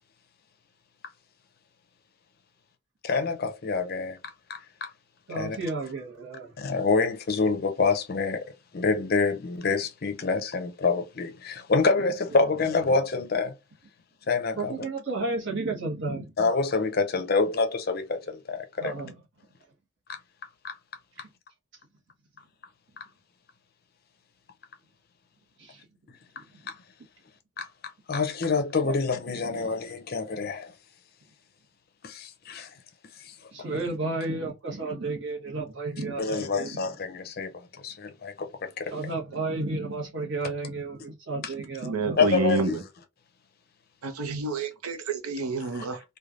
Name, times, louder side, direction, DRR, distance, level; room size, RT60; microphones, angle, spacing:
voice 1, 3.0-4.2 4.5-4.9 5.4-5.6 6.6-8.5 8.7-13.5 14.3-14.8 16.4-18.9 20.1-20.2 20.6-20.8 23.0-23.1 26.4-26.7 27.6-30.7 32.0-32.7 33.2-33.3 36.2-39.1 41.4-41.5 42.2-42.8 45.7-45.9, left 4 dB, 45° left, 0.5 m, -27 dB
voice 2, 5.3-6.5 14.6-16.3 18.8-19.1 25.6-25.8 28.8-29.0 29.3-29.7 33.5-36.8 38.9-42.2, right 3 dB, 55° right, 1.1 m, -32 dB
voice 3, 41.8-42.8 44.0-46.0, right 3 dB, 85° right, 0.7 m, -29 dB
3.2 x 2.2 x 2.4 m
head